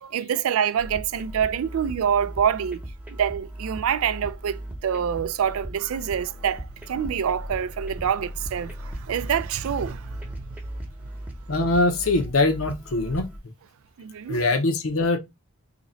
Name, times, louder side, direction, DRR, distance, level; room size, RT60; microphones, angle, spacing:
voice 1, 0.0-2.8 3.1-10.5 14.0-14.4, right 8 dB, 80° right, 0.4 m, -26 dB
sound 1, 0.8-13.4, equal, 10° right, 0.9 m, -37 dB
voice 2, 11.5-13.3 14.3-15.2, left 2 dB, 80° left, 0.8 m, -22 dB
2.9 x 2.8 x 3.9 m
head